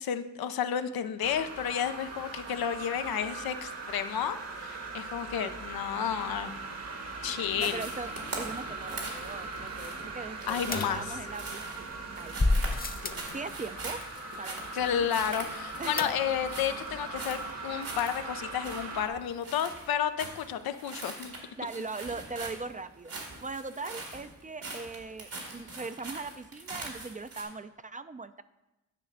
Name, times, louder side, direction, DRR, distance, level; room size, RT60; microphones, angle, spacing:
voice 1, 0.0-6.6 7.2-7.8 10.5-11.0 13.0-13.4 14.7-21.3, left 9 dB, 90° left, 9 dB, 0.5 m, -31 dB
sound 1, 1.2-19.1, right 3 dB, 45° right, 1.1 m, -40 dB
sound 2, 7.5-27.4, right 2 dB, 75° right, 2.0 m, -42 dB
voice 2, 7.6-8.1 8.4-11.9 12.2-14.0 14.4-15.1 15.8-16.2 21.6-23.1 23.4-28.4, right 3 dB, 25° right, 12 dB, 0.4 m, -40 dB
sound 3, 10.7-11.7 12.4-13.3 16.0-16.6 16.9-17.0 17.2-17.3, left 2 dB, 25° left, 0.8 m, -30 dB
9.5 x 3.2 x 6.5 m, 0.98 s
cardioid pair, 50°, 35 cm